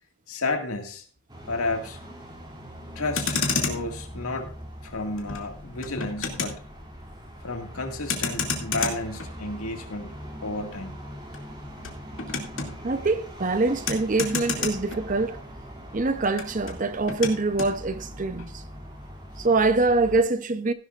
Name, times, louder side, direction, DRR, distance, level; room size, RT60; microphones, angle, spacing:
voice 1, 0.3-1.0 1.5-2.0 3.0-4.5 4.8-6.6 7.4-10.9 18.4-18.5, left 2 dB, 75° left, 2.0 m, -32 dB
sound 1, 1.3-20.2, equal, 20° right, 2.8 m, -42 dB
Motor vehicle (road), 2.9-15.6 15.8-17.8, left 4 dB, 60° left, 2.5 m, -33 dB
voice 2, 12.8-15.4 15.9-18.6 19.4-20.7, right 3 dB, 35° right, 0.7 m, -24 dB
16.5 x 11.0 x 2.5 m
head